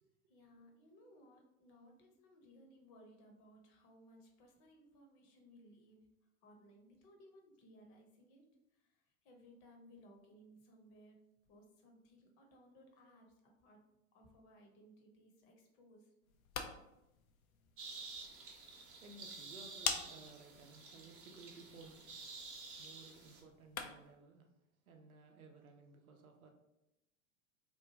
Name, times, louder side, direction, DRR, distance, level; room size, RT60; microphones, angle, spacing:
voice 1, 0.3-6.0 6.4-8.5 9.2-11.2 11.5-13.3 13.6-13.8 14.1-16.1, equal, 50° left, 2 dB, 0.9 m, -62 dB
sound 1, 16.2-24.2, left 6 dB, 80° left, 0.5 m, -47 dB
sound 2, 17.8-23.4, right 4 dB, 35° right, 0.8 m, -51 dB
voice 2, 19.0-22.0 22.8-24.5 24.9-26.5, right 3 dB, 85° right, 3 dB, 0.6 m, -57 dB
2.9 x 2.2 x 2.7 m, 0.89 s
figure-of-eight pair, 85°, 42 cm